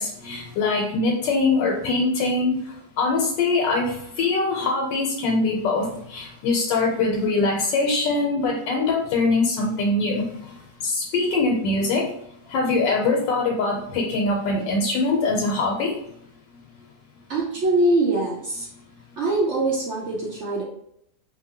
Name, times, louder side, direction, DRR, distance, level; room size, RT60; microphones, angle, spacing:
voice 1, 0.0-2.6 3.0-10.2 10.8-12.1 12.5-15.9, left 3 dB, 90° left, -1 dB, 1.3 m, -23 dB
voice 2, 17.3-18.7 19.2-20.6, right 2 dB, 70° right, -4 dB, 0.6 m, -23 dB
2.7 x 2.7 x 2.7 m, 0.74 s
omnidirectional pair, 1.9 m